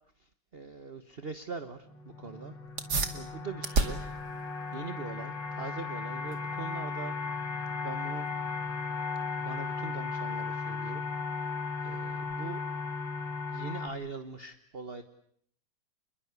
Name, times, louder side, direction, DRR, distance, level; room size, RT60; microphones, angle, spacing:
voice 1, 0.2-2.9 3.1-4.0 4.7-7.2 7.8-8.3 9.3-11.0 11.4-11.5 11.8-12.6 13.5-15.0, right 4 dB, 35° right, 9 dB, 1.4 m, -42 dB
sound 1, 1.8-13.9, left 4 dB, 80° left, 4.0 m, -36 dB
sound 2, 2.7-12.7, right 3 dB, 60° right, 2.8 m, -38 dB
28.5 x 22.0 x 8.2 m, 0.65 s
omnidirectional pair, 1.9 m